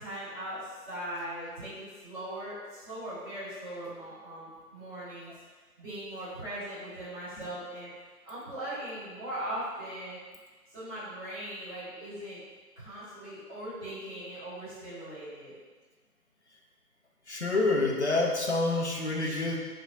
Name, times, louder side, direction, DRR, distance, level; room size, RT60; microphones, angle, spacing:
voice 1, 0.0-5.3 5.8-7.9 8.2-10.2 10.7-12.4 12.8-15.5, right 1 dB, 15° right, -13 dB, 1.1 m, -39 dB
voice 2, 17.3-19.6, left 2 dB, 50° left, 0 dB, 0.5 m, -27 dB
4.9 x 2.2 x 2.5 m, 1.4 s
figure-of-eight pair, 160°, 47 cm